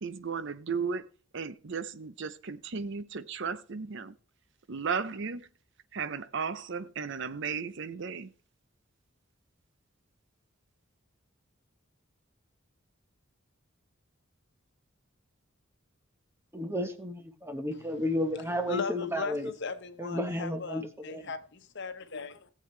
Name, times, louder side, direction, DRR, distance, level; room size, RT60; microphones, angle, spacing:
voice 1, 0.0-1.1 1.3-4.1 4.7-5.5 5.9-8.3, right 5 dB, 65° right, 0.7 m, -35 dB
voice 2, 16.5-19.4 20.0-21.2, left 1 dB, 10° right, 1.1 m, -32 dB
voice 3, 17.7-18.0 18.3-22.5, left 4 dB, 60° left, 1.0 m, -39 dB
18.0 x 7.7 x 3.2 m
head